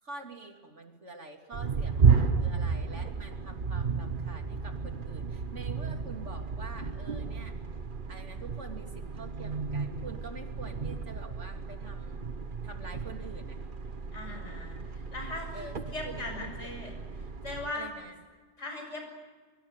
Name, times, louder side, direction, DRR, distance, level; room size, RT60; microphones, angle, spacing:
voice 1, 0.0-7.5 8.1-12.3 12.6-13.6 14.2-14.8 15.5-16.8 17.7-18.2, right 3 dB, 90° right, 3 dB, 3.4 m, -46 dB
sound 1, 1.5-17.7, right 5 dB, 45° right, 1.3 m, -32 dB
voice 2, 14.1-14.8 15.1-15.7 15.9-16.9 17.4-17.9 18.6-19.1, left 2 dB, 90° left, 2 dB, 7.8 m, -38 dB
24.5 x 23.5 x 9.1 m, 1.4 s
omnidirectional pair, 1.2 m